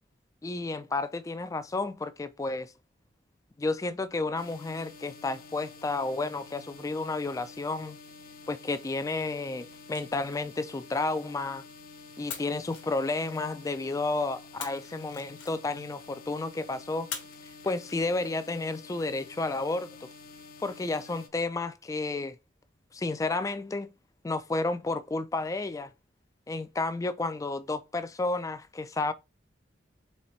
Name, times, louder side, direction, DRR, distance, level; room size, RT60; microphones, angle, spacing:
voice 1, 0.4-2.7 3.6-8.0 8.5-11.6 12.2-17.1 17.4-20.1 20.6-22.4 22.9-23.9 24.2-25.9 26.5-29.1, left 3 dB, 20° left, 0.3 m, -31 dB
sound 1, 4.4-21.3, left 4 dB, 50° left, 0.7 m, -49 dB
sound 2, 9.5-11.8 12.3-13.9 14.6-16.0 17.1-18.4, left 7 dB, 85° left, 1.1 m, -45 dB
4.2 x 3.3 x 3.0 m
head